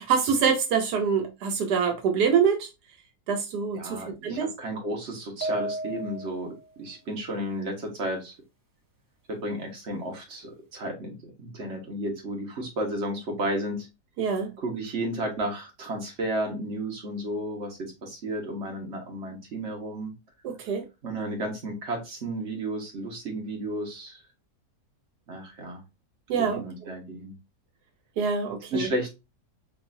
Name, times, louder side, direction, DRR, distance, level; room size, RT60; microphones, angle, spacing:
voice 1, 0.0-2.7 3.3-4.5 14.2-14.5 20.4-20.9 26.3-26.9 28.2-28.9, right 6 dB, 85° right, 1.4 m, -25 dB
voice 2, 3.7-8.3 9.3-13.9 14.6-20.1 21.0-24.2 25.3-25.8 26.3-27.3 28.7-29.1, right 1 dB, 45° right, 1.5 m, -33 dB
sound 1, 5.4-6.6, right 1 dB, 25° right, 0.4 m, -32 dB
5.2 x 2.6 x 2.6 m
omnidirectional pair, 1.7 m